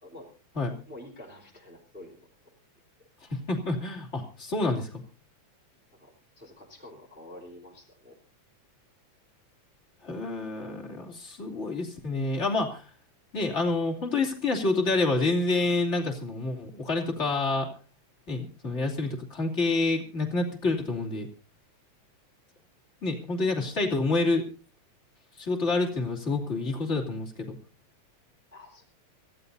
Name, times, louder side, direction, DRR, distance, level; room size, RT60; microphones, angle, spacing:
voice 1, 0.9-2.2 6.0-8.2 28.5-28.8, left 1 dB, 5° right, -1 dB, 3.3 m, -48 dB
voice 2, 3.3-4.9 10.0-12.9 13.3-17.7 18.3-21.3 23.0-24.4 25.4-27.6, left 3 dB, 25° left, 1 dB, 2.9 m, -28 dB
25.5 x 15.5 x 2.7 m, 0.34 s
omnidirectional pair, 3.3 m